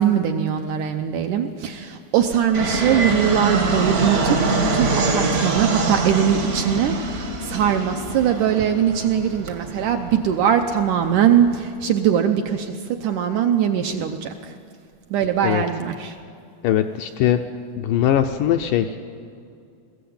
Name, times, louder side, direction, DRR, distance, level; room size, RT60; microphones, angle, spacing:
voice 1, 0.0-14.5 15.1-16.2, right 9 dB, 75° right, 5 dB, 1.9 m, -21 dB
Fixed-wing aircraft airplane, 2.5-11.6, right 3 dB, 50° right, 1.1 m, -24 dB
voice 2, 16.6-17.4 17.8-19.0, left 11 dB, 80° left, 6 dB, 1.9 m, -20 dB
20.5 x 15.0 x 8.7 m, 2.4 s
omnidirectional pair, 4.3 m